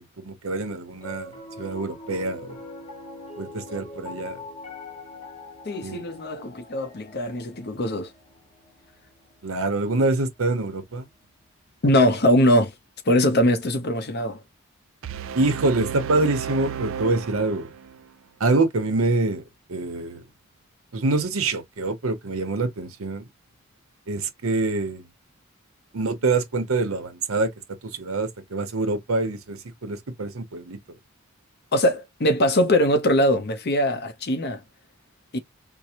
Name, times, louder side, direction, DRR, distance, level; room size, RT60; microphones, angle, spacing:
voice 1, 0.0-2.6 3.4-4.4 5.8-6.1 9.4-11.1 15.3-17.7 18.4-19.4 19.7-20.2 20.9-23.2 24.1-25.0 25.9-27.5 27.9-30.8, right 3 dB, 85° right, 0.8 m, -25 dB
Piano, 0.9-11.3, left 2 dB, 30° left, 1.6 m, -43 dB
voice 2, 5.6-8.1 11.8-12.7 13.0-14.4 31.7-34.6 35.3-35.4, left 1 dB, 50° left, 0.7 m, -21 dB
sound 1, 15.0-18.0, right 8 dB, 65° right, 0.4 m, -33 dB
4.5 x 2.0 x 2.8 m
head